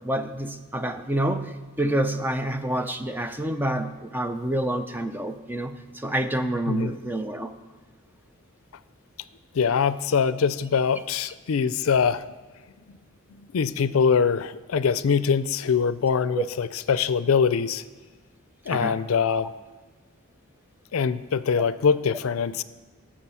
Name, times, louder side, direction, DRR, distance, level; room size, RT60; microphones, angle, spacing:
voice 1, 0.0-7.5 16.4-16.5 18.7-19.0, right 1 dB, 10° right, 8 dB, 0.5 m, -28 dB
voice 2, 9.5-12.2 12.9-13.0 13.3-17.8 18.7-19.5 20.9-22.6, left 6 dB, 85° left, 16 dB, 0.4 m, -23 dB
14.0 x 7.5 x 5.6 m, 1.3 s
head